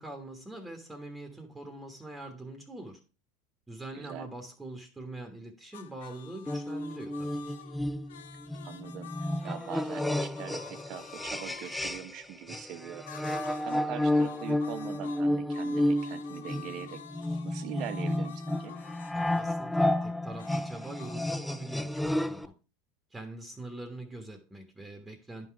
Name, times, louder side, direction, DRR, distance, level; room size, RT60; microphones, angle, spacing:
voice 1, 0.0-3.0 3.7-7.4 19.1-22.5 23.1-25.5, right 2 dB, 10° right, 4 dB, 1.4 m, -43 dB
voice 2, 3.9-4.3 8.6-17.0 17.4-18.8, right 11 dB, 55° right, 12 dB, 0.8 m, -42 dB
sound 1, 5.7-12.0 13.0-13.9 14.1-19.5 20.4-21.1, left 10 dB, 85° left, 0.6 m, -49 dB
sound 2, 6.5-12.2 12.5-22.5, left 1 dB, 5° left, 0.4 m, -31 dB
10.5 x 3.9 x 4.8 m, 0.35 s
hypercardioid pair, 95°, 0 cm